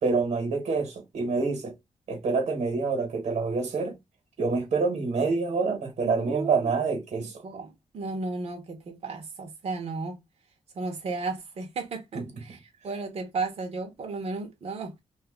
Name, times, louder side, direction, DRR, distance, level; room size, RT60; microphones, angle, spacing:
voice 1, 0.0-1.7 2.1-4.0 4.4-7.4 12.1-12.6, right 4 dB, 80° right, 1.1 m, -27 dB
voice 2, 6.0-6.7 7.2-10.2 10.7-15.0, right 3 dB, 60° right, 0.8 m, -34 dB
2.6 x 2.4 x 3.5 m
cardioid pair, 90°, 12 cm